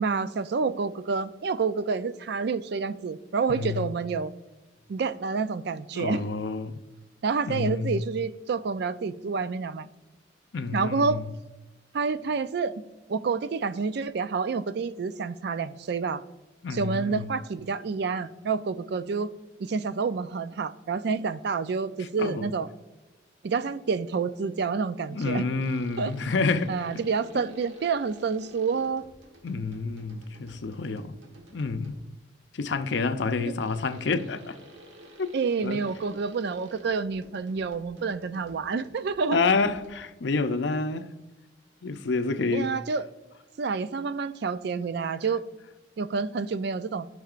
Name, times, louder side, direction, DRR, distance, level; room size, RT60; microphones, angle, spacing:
voice 1, 0.0-4.3 4.9-6.2 7.2-9.9 10.7-11.2 11.9-12.7 13.1-16.2 16.7-19.3 19.6-22.7 23.4-25.4 26.0-26.1 26.7-29.0 35.3-39.4 42.5-43.0 43.6-45.4 46.0-47.1, right 5 dB, 60° right, 0.4 m, -28 dB
voice 2, 3.5-3.9 5.9-6.8 7.5-8.0 10.5-11.3 16.6-17.4 22.0-22.5 25.1-26.8 29.4-31.2 31.5-31.9 32.5-34.6 35.2-35.3 35.6-35.8 39.3-41.1 41.8-42.8, left 4 dB, 65° left, 0.5 m, -28 dB
sound 1, 25.6-32.2 33.6-40.3, right 1 dB, 80° right, 1.4 m, -52 dB
13.0 x 5.7 x 2.5 m
head